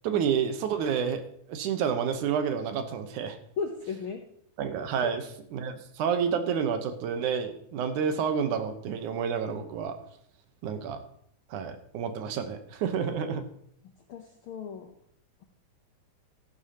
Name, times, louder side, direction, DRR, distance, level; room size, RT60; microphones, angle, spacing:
voice 1, 0.0-1.2 1.5-3.4 4.6-10.0 10.6-11.0 11.5-13.4, right 7 dB, 80° right, 8 dB, 2.4 m, -29 dB
voice 2, 3.6-4.2 5.0-5.1 12.4-12.5 14.1-14.9, left 5 dB, 90° left, 4 dB, 1.1 m, -35 dB
13.0 x 11.5 x 2.9 m, 0.68 s
omnidirectional pair, 3.5 m